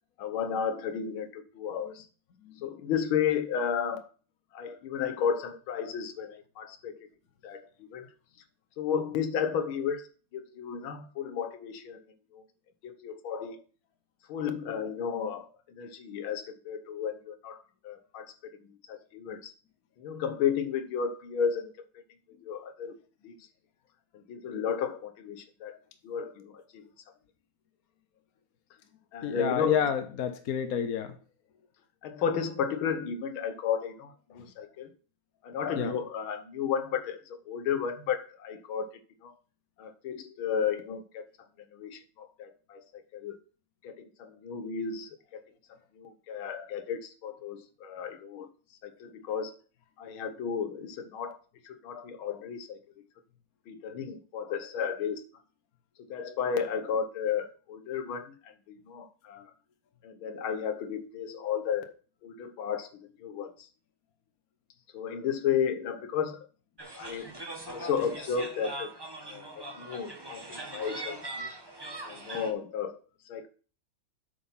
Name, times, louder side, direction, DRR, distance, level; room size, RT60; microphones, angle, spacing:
voice 1, 0.2-2.1 2.6-4.1 4.5-7.1 7.4-8.1 8.8-10.1 10.3-12.0 12.3-12.4 12.8-13.6 14.3-18.3 18.6-19.5 20.0-21.7 22.4-23.0 23.2-23.3 24.1-25.8 26.0-26.8 29.1-29.8 32.0-34.9 35.4-39.4 39.8-41.3 41.7-43.4 43.8-45.4 46.0-48.5 48.8-49.5 50.0-51.4 51.7-52.8 53.7-55.2 56.1-59.5 60.0-61.9 62.2-63.7 64.9-66.5 67.0-67.3 67.7-68.9 69.2-71.5 72.0-73.0 73.3-73.5, left 7 dB, 85° left, 1.8 m, -33 dB
voice 2, 29.2-31.1 34.3-34.4 35.8-35.9, left 8 dB, 55° left, 1.1 m, -29 dB
sound 1, 66.8-72.5, right 2 dB, 15° right, 0.9 m, -41 dB
8.7 x 6.0 x 5.7 m
omnidirectional pair, 2.2 m